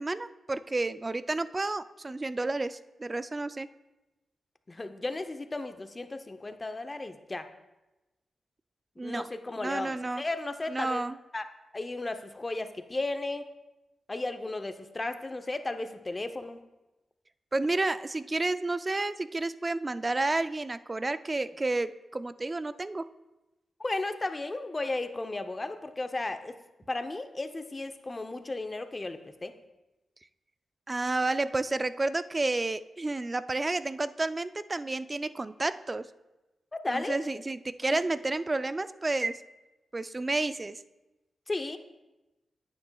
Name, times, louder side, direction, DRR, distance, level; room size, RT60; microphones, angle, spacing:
voice 1, 0.0-3.7 9.0-9.3 9.6-10.2 10.7-11.2 17.5-23.1 30.9-36.1 36.9-39.4 39.9-40.8, right 2 dB, 30° right, 14 dB, 0.3 m, -31 dB
voice 2, 4.7-7.5 9.0-11.0 11.3-11.4 11.7-13.5 14.1-16.6 23.8-26.6 26.9-29.5 36.7-37.2 41.5-41.8, left 2 dB, 30° left, 8 dB, 0.6 m, -34 dB
9.6 x 8.8 x 2.3 m, 1.0 s
cardioid pair, 65°, 0 cm